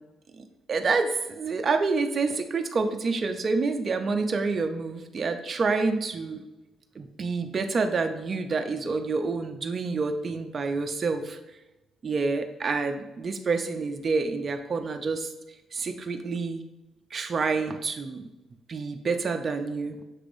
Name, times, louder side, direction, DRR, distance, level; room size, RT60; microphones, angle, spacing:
voice 1, 0.4-6.4 7.0-11.4 12.0-15.3 15.7-16.6 17.1-18.2 18.7-20.0, right 4 dB, 40° right, 5 dB, 0.4 m, -28 dB
6.0 x 3.3 x 2.6 m, 1.0 s
cardioid pair, 90°, 0 cm